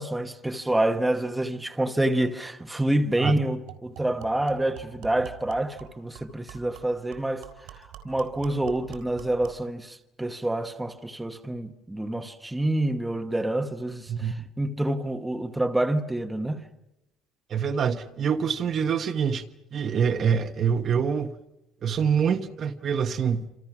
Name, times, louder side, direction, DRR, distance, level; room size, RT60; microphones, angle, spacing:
voice 1, 0.0-7.5 7.7-16.6, right 1 dB, 5° right, 1.0 m, -27 dB
sound 1, 2.8-2.9 3.2-3.3 3.7-9.7, right 11 dB, 85° right, 3.9 m, -46 dB
voice 2, 14.1-14.5 17.5-19.4 19.7-21.3 21.8-23.4, right 7 dB, 35° right, 1.0 m, -25 dB
28.0 x 27.0 x 6.0 m
cardioid pair, 175°, 0 cm